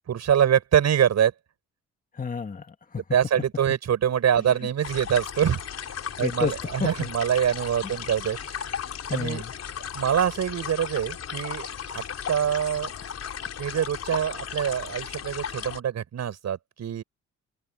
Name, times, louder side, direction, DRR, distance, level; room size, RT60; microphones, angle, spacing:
voice 1, 0.1-1.3 3.1-5.6 6.2-8.7 9.1-9.4 9.9-11.7 11.9-12.9 13.6-17.0, right 9 dB, 60° right, 7.4 m, -24 dB
voice 2, 2.1-3.0 6.2-6.5 6.8-7.1 9.1-9.5, left 5 dB, 30° left, 2.1 m, -30 dB
sound 1, 4.8-15.8, left 8 dB, 55° left, 5.1 m, -36 dB
open air
cardioid pair, 90°, 30 cm